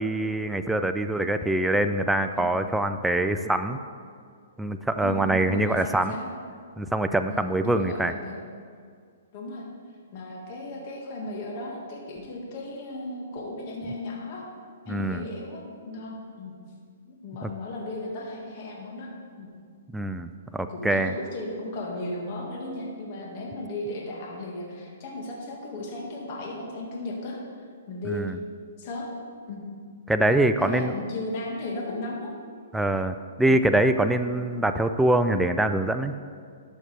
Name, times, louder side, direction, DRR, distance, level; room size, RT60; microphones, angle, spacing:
voice 1, 0.0-3.8 4.6-6.1 6.8-8.1 14.9-15.2 17.4-17.5 19.9-21.1 28.1-28.4 30.1-30.9 32.7-36.1, right 1 dB, 5° right, 8 dB, 0.3 m, -24 dB
voice 2, 5.0-6.3 7.3-8.4 9.3-9.6 10.1-14.4 14.9-16.5 17.2-19.1 19.4-19.5 20.7-27.4 27.9-28.3 28.8-29.1 29.5-29.7 30.6-32.3, left 2 dB, 45° left, -3 dB, 1.8 m, -35 dB
12.0 x 6.4 x 3.4 m, 2.1 s
hypercardioid pair, 145°, 0 cm